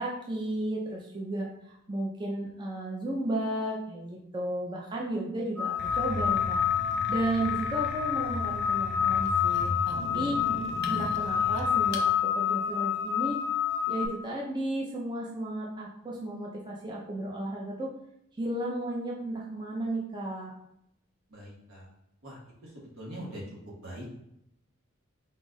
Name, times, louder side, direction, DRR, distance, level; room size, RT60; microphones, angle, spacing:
voice 1, 0.0-6.6 7.1-10.4 10.7-13.4 13.9-17.9 18.4-20.5, right 1 dB, 20° right, -3 dB, 0.5 m, -34 dB
sound 1, 5.6-14.1, left 8 dB, 10° left, 0.7 m, -28 dB
sound 2, 5.8-12.1, left 1 dB, 55° left, 0.5 m, -37 dB
voice 2, 11.3-11.7 21.3-21.9 22.2-22.4 23.0-23.4 23.8-24.1, equal, 85° right, -4 dB, 1.4 m, -42 dB
4.0 x 2.4 x 3.9 m, 0.78 s
head